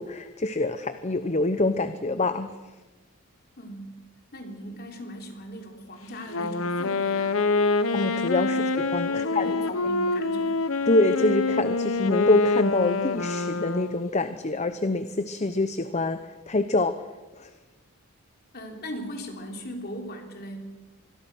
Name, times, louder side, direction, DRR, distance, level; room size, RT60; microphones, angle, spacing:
voice 1, 0.0-2.5 7.9-9.5 10.9-16.2 16.5-17.0 17.4-17.5, left 2 dB, 30° left, 10 dB, 0.8 m, -25 dB
voice 2, 3.6-3.9 4.3-7.4 8.5-8.6 9.1-10.6 18.5-20.6, equal, 45° left, 3 dB, 3.7 m, -38 dB
Wind instrument woodwind instrument, 6.3-14.2, left 3 dB, 65° left, 1.1 m, -26 dB
25.5 x 21.5 x 6.2 m, 1.2 s
head